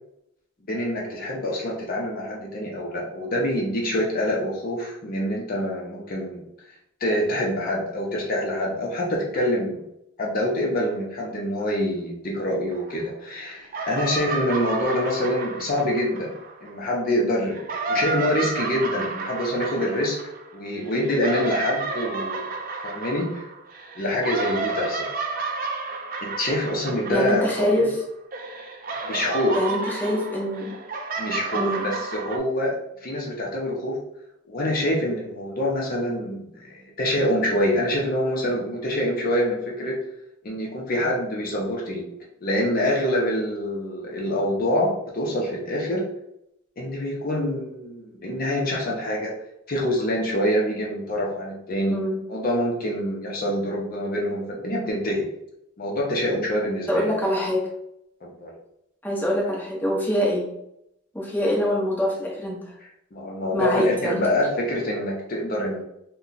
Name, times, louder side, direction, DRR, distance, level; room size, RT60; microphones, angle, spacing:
voice 1, 0.7-6.4 7.0-9.8 10.2-16.3 16.6-20.2 20.5-22.5 22.8-23.5 24.0-25.3 26.2-27.9 29.0-29.6 31.2-34.0 34.5-40.0 40.4-42.1 42.4-46.1 46.8-49.3 49.7-52.0 52.3-55.3 55.8-57.1 58.2-58.5 63.1-65.8, left 1 dB, 45° left, -2 dB, 0.6 m, -26 dB
sound 1, 12.7-13.4 13.6-16.9 17.4-28.0 28.3-32.4, right 3 dB, 45° right, 0.4 m, -31 dB
voice 2, 27.1-27.9 29.5-30.8 31.5-31.9 51.9-52.2 56.9-57.6 59.0-60.5 61.1-62.6 63.5-64.2, left 1 dB, 10° left, -4 dB, 0.7 m, -24 dB
2.8 x 2.2 x 3.8 m, 0.80 s
head